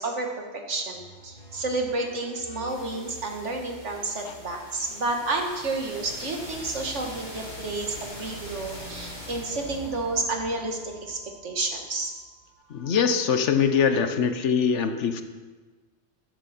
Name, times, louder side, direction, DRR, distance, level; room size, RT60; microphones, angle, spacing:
voice 1, 0.0-12.1, right 2 dB, 80° right, 2 dB, 1.9 m, -30 dB
sound 1, 0.9-12.8, equal, 40° left, 3.6 m, -43 dB
voice 2, 12.7-15.2, left 6 dB, 80° left, 8 dB, 1.2 m, -23 dB
13.5 x 11.0 x 4.3 m, 1.3 s
omnidirectional pair, 1.2 m